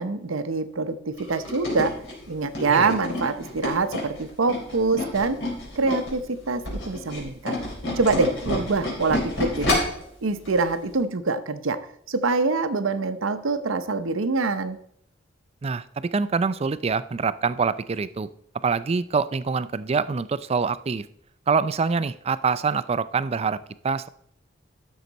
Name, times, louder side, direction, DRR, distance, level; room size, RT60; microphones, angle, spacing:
voice 1, 0.0-1.9 2.3-5.4 5.8-7.6 8.0-9.8 10.2-11.8 12.1-14.8, right 3 dB, 80° right, 11 dB, 0.8 m, -25 dB
Tools, 1.2-6.2 6.5-10.0 10.5-10.6 10.9-11.0, left 1 dB, 65° left, 3.9 m, -29 dB
voice 2, 15.6-18.3 18.6-21.1 21.5-23.6 23.8-24.1, right 5 dB, 30° right, 15 dB, 0.4 m, -25 dB
12.5 x 6.5 x 4.0 m, 0.70 s
head